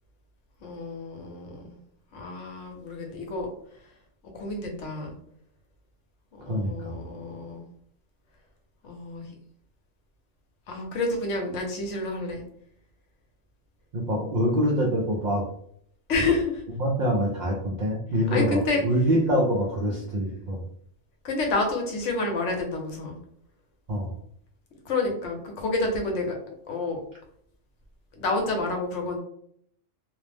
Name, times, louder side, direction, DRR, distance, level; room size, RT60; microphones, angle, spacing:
voice 1, 0.6-1.8 2.1-3.5 4.2-5.1 6.3-7.7 8.8-9.3 10.7-12.4 16.1-16.6 18.3-18.8 19.9-20.0 20.3-20.4 21.2-23.2 24.8-26.3 26.7-27.0 28.2-29.2, left 3 dB, 70° left, 2 dB, 1.0 m, -29 dB
voice 2, 6.5-7.0 13.9-15.5 16.8-20.6 23.9-24.1, equal, 60° right, -3 dB, 0.4 m, -25 dB
2.4 x 2.0 x 3.2 m, 0.66 s
omnidirectional pair, 1.3 m